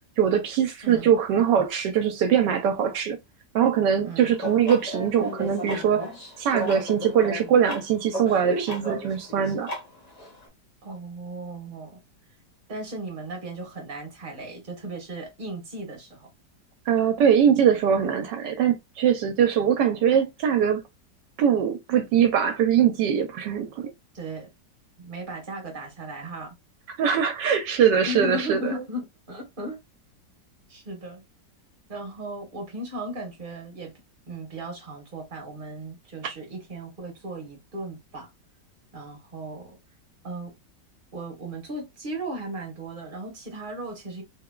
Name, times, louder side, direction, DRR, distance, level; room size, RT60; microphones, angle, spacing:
voice 1, 0.2-3.2 3.5-6.0 6.4-9.7 16.9-20.8 21.4-23.9 27.0-28.7, right 8 dB, 80° right, 1.2 m, -22 dB
voice 2, 0.8-1.2 4.0-4.4 10.8-12.0 12.7-16.3 24.1-24.5 25.0-26.6 28.1-29.8 30.7-31.2 31.9-33.9 34.3-38.3 38.9-39.8 40.2-40.5 41.1-44.2, right 1 dB, 30° right, 1.3 m, -36 dB
sound 1, 4.3-10.5, equal, 25° left, 1.0 m, -35 dB
3.5 x 2.9 x 2.3 m
omnidirectional pair, 1.9 m